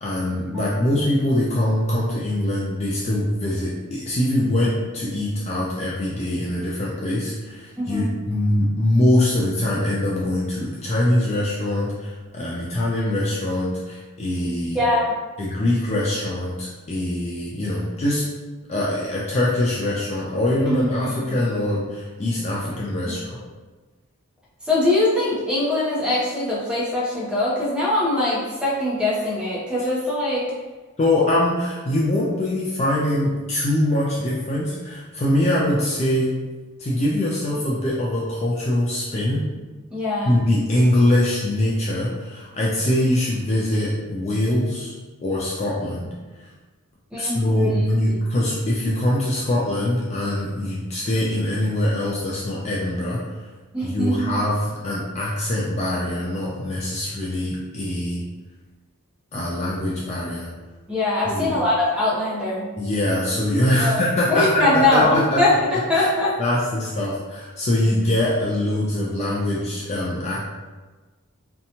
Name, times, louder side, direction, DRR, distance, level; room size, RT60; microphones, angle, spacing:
voice 1, 0.0-14.8 15.4-18.2 18.7-23.4 31.0-36.4 36.8-39.5 40.2-44.9 45.2-46.1 47.2-53.4 53.8-58.2 59.3-60.5 61.3-61.6 62.8-65.4 65.9-66.1 66.4-70.4, left 1 dB, 30° left, -5 dB, 0.3 m, -23 dB
voice 2, 0.5-0.8 7.8-8.1 14.7-15.1 20.7-21.4 23.0-23.1 24.6-30.5 39.9-40.4 47.1-47.8 48.1-48.2 53.7-54.3 60.9-62.7 63.8-64.0 64.3-66.4, left 2 dB, 5° right, -7 dB, 0.6 m, -22 dB
2.7 x 2.2 x 2.7 m, 1.3 s
head